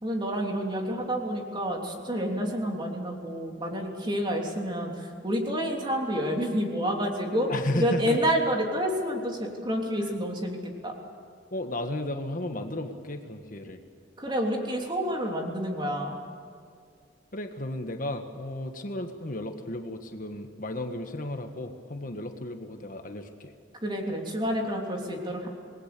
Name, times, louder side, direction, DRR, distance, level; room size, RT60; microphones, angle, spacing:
voice 1, 0.0-10.9 14.2-16.2 23.8-25.5, equal, 25° right, 1 dB, 3.2 m, -29 dB
voice 2, 7.5-8.2 10.0-10.1 11.5-13.8 17.3-23.5, left 1 dB, 45° left, 5 dB, 1.5 m, -34 dB
27.5 x 20.5 x 6.9 m, 2.3 s
head